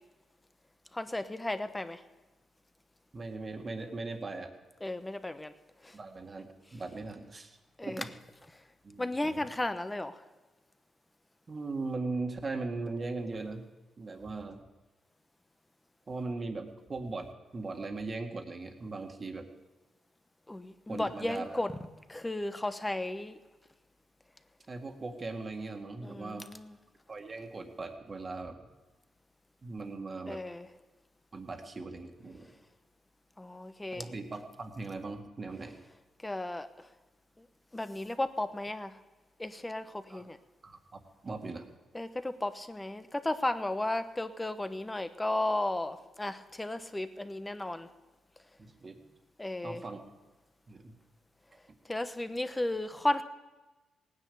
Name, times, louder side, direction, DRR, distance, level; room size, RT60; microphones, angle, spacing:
voice 1, 0.9-2.0 4.8-5.5 7.8-8.0 9.0-10.2 20.5-21.7 22.1-23.4 26.0-26.7 30.3-30.7 33.4-34.0 36.2-36.7 37.7-38.9 39.4-40.4 41.9-47.9 49.4-49.8 51.9-53.2, left 1 dB, 15° left, 10 dB, 1.0 m, -34 dB
voice 2, 3.1-4.5 5.9-7.6 7.8-8.1 8.8-9.5 11.5-13.7 14.0-14.6 16.1-19.5 20.9-21.6 24.7-26.4 27.1-28.6 29.6-30.4 31.3-32.5 33.9-35.8 40.1-40.3 40.6-41.7 48.6-49.0 49.6-50.0 50.7-50.9, right 3 dB, 35° right, 4 dB, 1.9 m, -39 dB
18.0 x 9.8 x 7.0 m, 1.2 s
cardioid pair, 95°, 0 cm